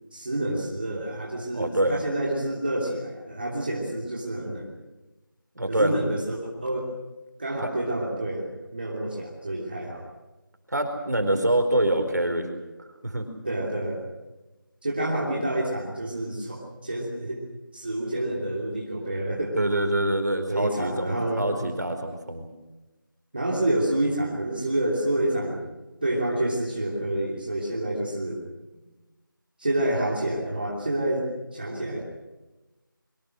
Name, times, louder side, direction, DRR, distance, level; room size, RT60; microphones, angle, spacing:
voice 1, 0.1-4.8 5.7-6.9 7.4-10.0 13.4-14.0 14.8-17.4 17.7-19.6 20.5-21.6 23.3-25.6 26.0-28.4 29.6-32.0, right 1 dB, 25° right, -4 dB, 3.1 m, -28 dB
voice 2, 1.5-2.0 5.6-6.0 7.6-7.7 10.7-12.5 13.0-13.3 19.6-22.4 25.9-26.0, right 1 dB, 50° right, 5 dB, 4.6 m, -25 dB
26.0 x 24.0 x 6.4 m, 1.1 s
figure-of-eight pair, 175°, 12 cm